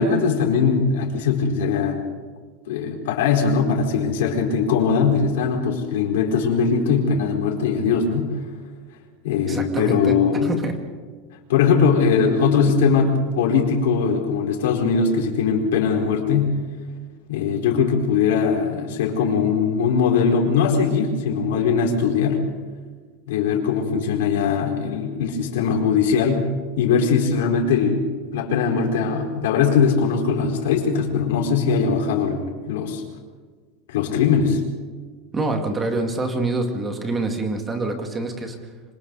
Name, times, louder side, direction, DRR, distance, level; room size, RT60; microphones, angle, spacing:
voice 1, 0.0-2.0 2.7-8.3 9.2-10.5 11.5-16.6 17.3-22.4 23.3-26.5 26.8-33.0 33.9-34.6, left 6 dB, 85° left, 2 dB, 4.6 m, -20 dB
voice 2, 9.5-10.7 35.3-38.6, right 2 dB, 15° right, 4 dB, 2.2 m, -26 dB
26.5 x 25.5 x 4.1 m, 1.5 s
supercardioid pair, 175°, 0 cm